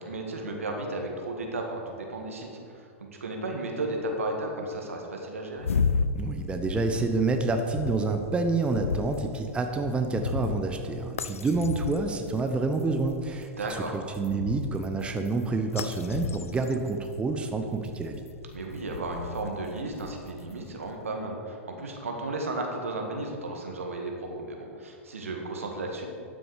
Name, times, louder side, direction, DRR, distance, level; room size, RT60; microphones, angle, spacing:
voice 1, 0.0-5.7 13.6-14.0 18.5-26.1, right 2 dB, 80° right, 1 dB, 1.7 m, -34 dB
sound 1, 5.6-20.7, left 5 dB, 85° left, 0.4 m, -35 dB
voice 2, 6.1-18.2, right 3 dB, 15° right, 5 dB, 0.8 m, -28 dB
12.5 x 6.3 x 4.9 m, 2.4 s
hypercardioid pair, 100°, 7 cm